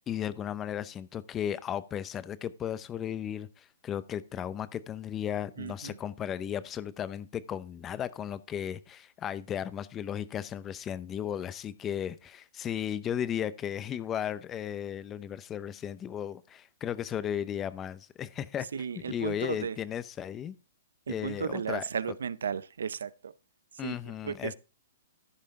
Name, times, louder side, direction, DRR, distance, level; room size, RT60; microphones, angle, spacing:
voice 1, 0.1-18.7 19.1-20.6 21.1-21.8 23.8-24.5, left 9 dB, 20° left, 0.7 m, -35 dB
voice 2, 5.6-6.0 18.6-19.8 21.1-23.4 23.7-24.5, right 6 dB, 80° right, 0.6 m, -35 dB
14.0 x 5.5 x 3.7 m
hypercardioid pair, 140°, 0 cm